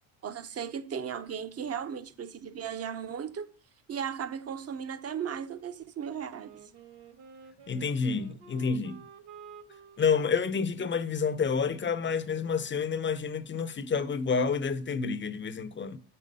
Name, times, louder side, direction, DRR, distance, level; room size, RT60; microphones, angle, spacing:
voice 1, 0.2-3.5 3.9-6.5, right 7 dB, 30° right, 0.7 m, -36 dB
Wind instrument woodwind instrument, 6.3-12.9, right 5 dB, 55° right, 1.5 m, -53 dB
voice 2, 7.7-9.0 10.0-16.0, left 5 dB, 25° left, 0.7 m, -29 dB
7.1 x 5.5 x 5.3 m
cardioid pair, 100°, 49 cm